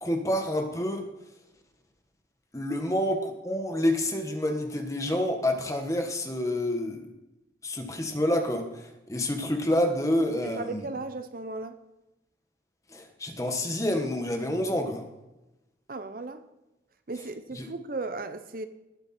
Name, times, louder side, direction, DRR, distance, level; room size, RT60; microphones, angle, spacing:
voice 1, 0.0-1.1 2.5-7.1 7.6-10.9 12.9-15.0 17.5-17.7, left 1 dB, 15° left, 1.3 m, -28 dB
voice 2, 10.4-11.8 15.9-16.4 17.1-18.7, right 3 dB, 50° right, 0.7 m, -36 dB
19.5 x 8.0 x 4.3 m
head